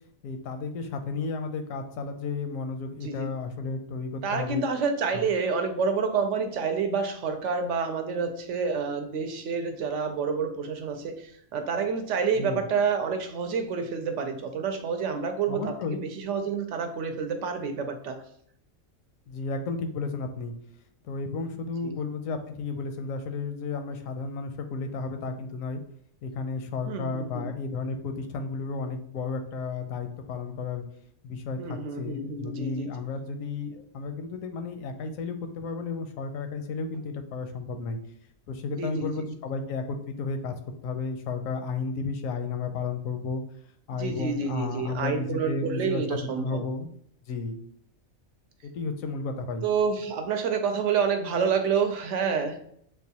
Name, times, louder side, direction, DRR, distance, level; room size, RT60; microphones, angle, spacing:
voice 1, 0.2-4.6 5.1-5.3 12.4-12.6 15.5-16.0 19.3-20.5 21.0-25.8 26.2-30.8 31.2-38.0 38.5-40.6 40.8-43.4 43.9-46.9 47.3-47.6 48.6-49.7, left 4 dB, 80° left, 7 dB, 1.0 m, -33 dB
voice 2, 4.2-18.2 21.8-21.9 26.9-27.5 31.6-32.9 38.8-39.1 43.9-46.6 49.6-52.7, right 5 dB, 70° right, 6 dB, 0.9 m, -28 dB
6.6 x 2.3 x 2.8 m, 0.68 s
omnidirectional pair, 1.4 m